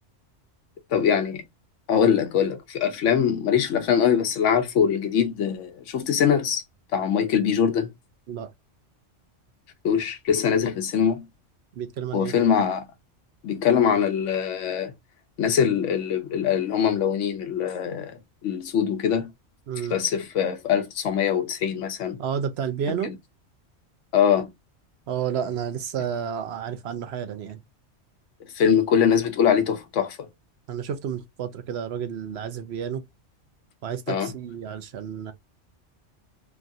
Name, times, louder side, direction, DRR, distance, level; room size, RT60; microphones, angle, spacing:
voice 1, 0.9-1.4 1.9-6.6 6.9-7.9 9.8-11.3 12.1-12.8 13.4-14.9 15.4-19.3 19.9-22.2 23.0-23.1 24.1-24.5 28.5-30.3 34.1-34.3, left 8 dB, 90° left, 1.0 m, -23 dB
voice 2, 11.8-12.3 19.7-20.0 22.2-23.1 25.1-27.6 30.7-33.0 33.8-35.3, right 8 dB, 65° right, 0.8 m, -31 dB
3.2 x 2.3 x 2.6 m
omnidirectional pair, 1.2 m